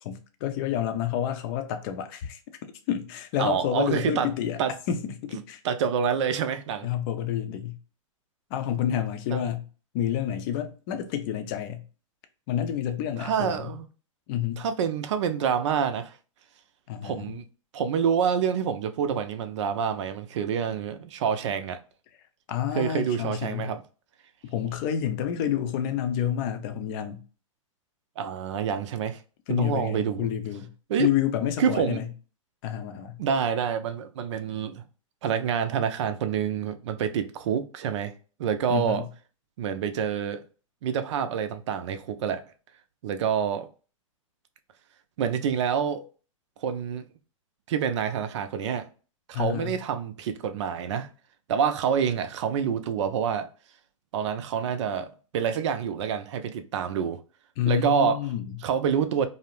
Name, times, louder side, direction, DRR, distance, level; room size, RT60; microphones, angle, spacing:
voice 1, 0.0-2.4 2.9-4.6 4.9-5.6 6.8-7.8 8.5-9.6 9.9-11.8 12.5-13.6 14.3-14.6 16.9-17.2 22.5-23.7 24.4-27.2 29.5-30.7 31.0-32.1 32.6-33.2 38.7-39.1 49.3-49.7 57.6-58.5, left 10 dB, 45° left, 0.5 m, -29 dB
voice 2, 3.4-4.8 5.3-6.9 8.7-9.4 13.2-13.9 14.6-16.2 17.0-17.4 17.7-21.8 22.7-23.8 28.2-29.2 29.5-30.3 30.9-31.1 31.6-32.0 33.2-34.8 35.2-38.1 38.4-39.1 39.6-40.4 40.8-42.4 43.0-43.7 45.2-46.1 46.6-47.1 47.7-48.9 49.3-51.1 51.5-53.5 54.1-57.2 57.7-58.3 58.6-59.3, right 7 dB, 60° right, 0.5 m, -27 dB
2.6 x 2.0 x 3.0 m
hypercardioid pair, 125°, 17 cm